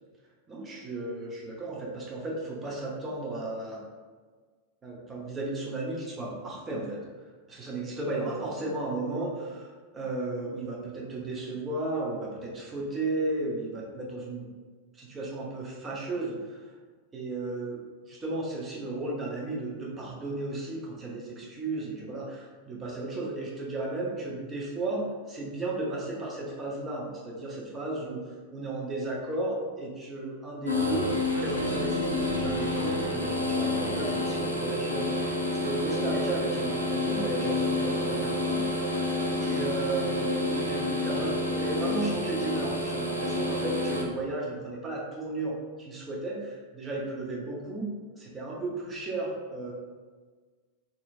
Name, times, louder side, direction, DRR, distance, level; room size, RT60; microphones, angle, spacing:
voice 1, 0.5-3.8 4.8-7.0 7.5-14.5 14.9-16.7 17.1-31.1 31.3-39.0 39.4-47.9 48.2-49.7, right 2 dB, 20° right, -3 dB, 0.7 m, -34 dB
sound 1, 30.6-44.0, left 1 dB, 90° left, 0.4 m, -29 dB
2.8 x 2.7 x 2.5 m, 1.5 s
figure-of-eight pair, 90°, 0 cm